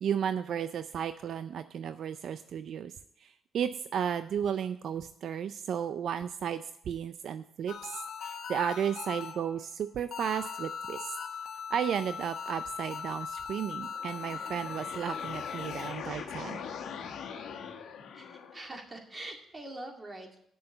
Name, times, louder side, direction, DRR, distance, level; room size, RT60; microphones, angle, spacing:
voice 1, 0.0-2.9 3.2-11.2 11.7-16.6, right 8 dB, 65° right, 12 dB, 0.4 m, -34 dB
sound 1, 7.7-9.7 10.1-15.9, left 7 dB, 65° left, 1.2 m, -40 dB
sound 2, 13.8-18.8, left 7 dB, 80° left, 1.4 m, -42 dB
voice 2, 18.1-20.4, right 2 dB, 25° right, 3 dB, 2.1 m, -44 dB
7.8 x 6.8 x 7.9 m, 0.72 s
cardioid pair, 90°, 0 cm